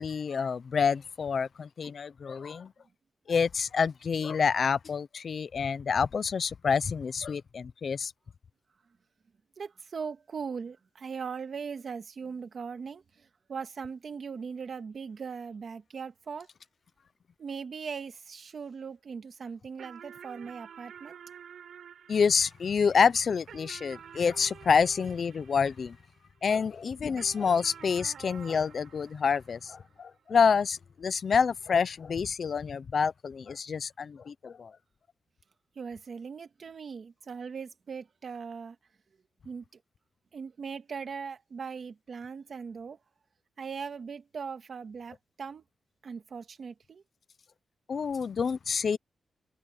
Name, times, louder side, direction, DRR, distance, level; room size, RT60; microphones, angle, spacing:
voice 1, 0.0-2.7 3.3-8.1 22.1-26.0 26.4-34.7 47.9-49.0, left 6 dB, 45° left, 0.5 m, -28 dB
voice 2, 9.6-16.5 17.4-21.2 35.8-38.8 39.4-39.6 40.3-43.0 43.6-45.6 46.0-47.0, right 6 dB, 45° right, 2.0 m, -39 dB
sound 1, 19.8-26.5 27.2-30.0, right 8 dB, 80° right, 5.3 m, -50 dB
wide cardioid pair, 180°, 0 cm